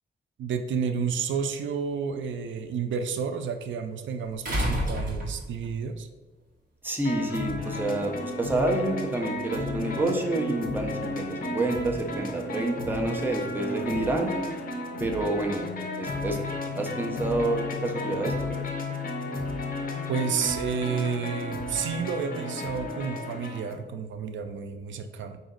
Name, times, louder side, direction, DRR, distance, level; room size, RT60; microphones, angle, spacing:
voice 1, 0.4-6.1 20.1-25.4, right 6 dB, 85° right, 8 dB, 0.4 m, -30 dB
sound 1, 1.2-1.3 4.4-5.7 7.1-7.2, equal, 45° right, 1.3 m, -29 dB
voice 2, 6.8-14.3 15.0-15.7 16.0-16.4 16.8-18.3, right 2 dB, 10° right, 2 dB, 0.5 m, -28 dB
sound 2, 7.0-23.7, left 2 dB, 50° left, 0.6 m, -33 dB
4.9 x 2.6 x 3.8 m, 1.2 s
wide cardioid pair, 140°, 19 cm